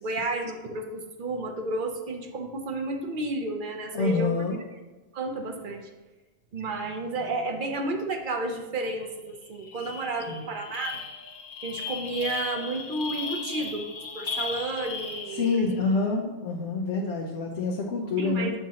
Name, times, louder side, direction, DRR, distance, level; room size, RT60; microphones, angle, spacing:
voice 1, 0.0-4.3 5.1-5.9 6.5-11.0 11.6-15.7 18.2-18.5, right 2 dB, 55° right, 4 dB, 0.8 m, -32 dB
voice 2, 3.9-4.6 10.3-10.5 15.3-18.5, left 3 dB, 85° left, -1 dB, 1.1 m, -27 dB
sound 1, 9.0-9.1 9.4-15.8, left 5 dB, 55° left, 0.8 m, -36 dB
7.3 x 5.5 x 2.8 m, 1.2 s
omnidirectional pair, 1.2 m